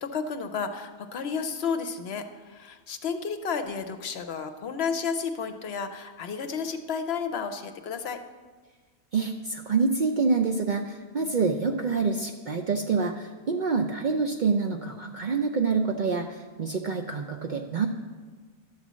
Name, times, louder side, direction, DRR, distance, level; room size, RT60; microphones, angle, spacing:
voice 1, 0.0-8.2, left 5 dB, 65° left, 7 dB, 0.8 m, -32 dB
voice 2, 9.1-17.9, right 4 dB, 55° right, 3 dB, 0.5 m, -27 dB
11.5 x 4.0 x 7.4 m, 1.4 s
omnidirectional pair, 1.3 m